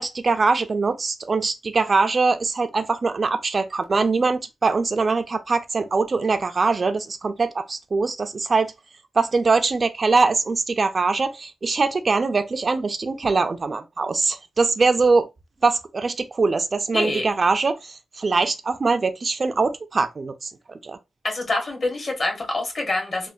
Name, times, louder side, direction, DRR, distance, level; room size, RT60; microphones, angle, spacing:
voice 1, 0.0-8.7 9.2-15.3 15.6-21.0, right 4 dB, 40° right, 0.3 m, -22 dB
voice 2, 16.9-17.2 21.2-23.3, left 2 dB, 50° left, 1.1 m, -26 dB
3.1 x 2.1 x 2.5 m
wide cardioid pair, 110°, 0 cm